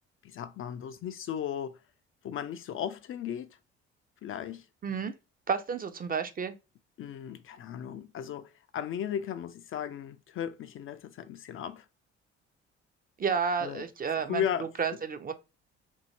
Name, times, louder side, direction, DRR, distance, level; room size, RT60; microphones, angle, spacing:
voice 1, 0.2-1.8 2.2-3.6 4.2-4.7 7.0-11.9 13.6-14.7, left 9 dB, 40° left, 0.4 m, -36 dB
voice 2, 4.8-5.1 5.5-6.5 13.2-14.4 14.8-15.3, right 6 dB, 30° right, 0.5 m, -31 dB
2.7 x 2.7 x 2.7 m
hypercardioid pair, 55°, 32 cm